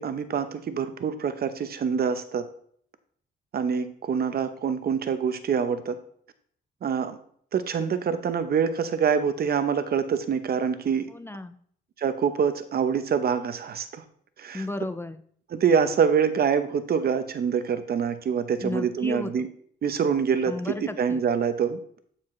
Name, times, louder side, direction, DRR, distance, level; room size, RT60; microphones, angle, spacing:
voice 1, 0.0-2.4 3.5-6.0 6.8-7.2 7.5-11.1 12.0-14.0 14.4-14.6 15.5-19.5 19.8-20.6 20.8-22.0, right 6 dB, 50° right, 10 dB, 0.8 m, -25 dB
voice 2, 11.1-11.6 14.5-15.2 18.6-19.5 20.5-21.2, left 2 dB, 10° left, 10 dB, 0.4 m, -34 dB
12.0 x 4.2 x 3.2 m, 0.62 s
cardioid pair, 90°, 20 cm